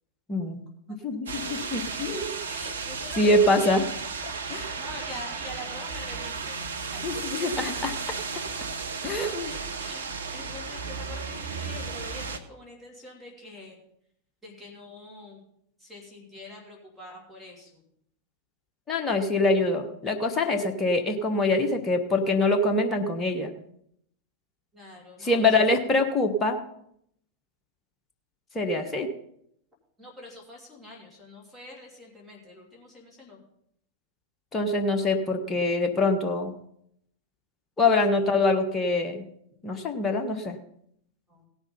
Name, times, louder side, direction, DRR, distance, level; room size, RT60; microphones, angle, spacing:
voice 1, 0.3-0.6 0.9-2.4 3.2-3.8 4.5-4.7 7.0-7.9 9.0-9.5 18.9-23.5 25.2-26.6 28.5-29.1 34.5-36.5 37.8-39.2 39.6-40.6, left 2 dB, 20° left, 4 dB, 1.3 m, -24 dB
sound 1, 1.3-12.4, right 5 dB, 70° right, 0.9 m, -34 dB
voice 2, 2.5-3.9 4.5-7.6 9.4-10.0 10.3-13.8 14.4-15.4 15.8-17.8 24.7-25.8 28.7-28.9 30.0-33.4 38.1-38.2 41.3-41.5, left 2 dB, ahead, -4 dB, 3.2 m, -44 dB
17.0 x 6.2 x 5.5 m, 0.72 s
figure-of-eight pair, 90°, 0 cm